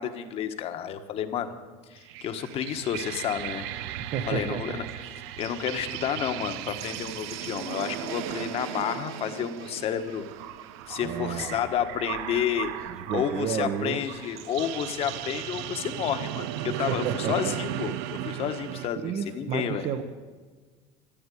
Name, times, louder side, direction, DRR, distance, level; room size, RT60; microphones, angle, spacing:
voice 1, 0.0-1.5 1.9-3.6 4.3-4.8 5.4-10.2 10.9-12.7 13.1-17.9 18.2-19.9, left 9 dB, 45° left, 8 dB, 1.3 m, -30 dB
sound 1, 2.0-18.9, right 12 dB, 90° right, 0.8 m, -36 dB
voice 2, 4.0-4.8 11.0-11.5 12.9-14.0 16.9-17.5 19.0-20.0, right 8 dB, 50° right, 7 dB, 1.0 m, -31 dB
14.0 x 12.0 x 8.4 m, 1.4 s
cardioid pair, 140°, 14 cm